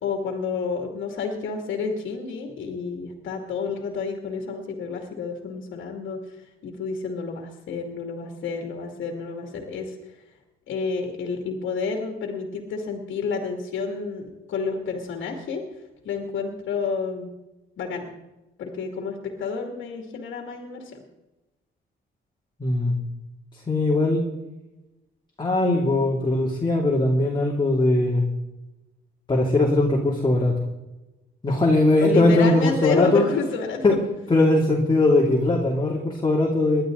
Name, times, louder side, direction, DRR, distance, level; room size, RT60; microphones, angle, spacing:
voice 1, 0.0-10.3 10.7-14.2 14.5-15.6 16.0-17.3 17.8-18.1 18.6-20.9 31.9-33.8, left 5 dB, 75° left, 2 dB, 2.6 m, -30 dB
voice 2, 22.6-23.0 23.7-24.2 25.4-28.3 29.3-30.6 31.4-33.3 33.8-34.0 34.3-36.8, left 2 dB, 25° left, -2 dB, 2.9 m, -20 dB
20.5 x 11.5 x 4.0 m, 1.0 s
cardioid pair, 90°, 20 cm